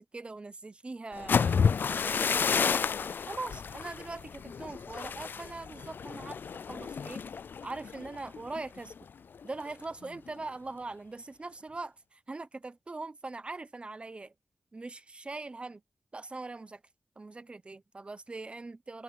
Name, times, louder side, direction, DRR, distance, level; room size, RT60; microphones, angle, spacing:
voice 1, 0.0-2.9 3.3-7.2 7.6-9.0 9.4-14.3 14.7-15.8 16.1-16.8 17.2-19.0, right 3 dB, 30° right, 1.0 m, -42 dB
sound 1, 1.1-9.0 9.3-9.7 10.0-10.4, left 6 dB, 65° left, 0.4 m, -31 dB
open air
wide cardioid pair, 100°, 4 cm